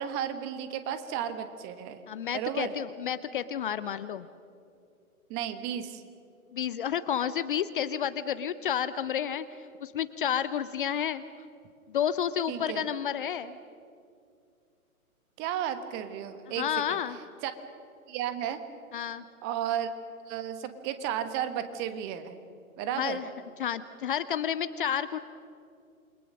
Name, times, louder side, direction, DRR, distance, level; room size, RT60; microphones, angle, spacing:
voice 1, 0.0-2.0 2.3-2.7 5.3-6.0 12.5-12.9 15.4-17.0 17.4-17.5 18.1-18.6 19.4-19.9 20.3-22.4 22.8-23.2, right 10 dB, 25° right, 10 dB, 1.4 m, -33 dB
voice 2, 2.1-4.3 6.5-9.4 9.8-11.2 11.9-13.6 16.6-17.2 18.9-19.2 23.0-23.2 23.6-25.2, left 9 dB, 35° left, 14 dB, 0.7 m, -30 dB
28.5 x 22.0 x 6.4 m, 2.4 s
figure-of-eight pair, 120°, 44 cm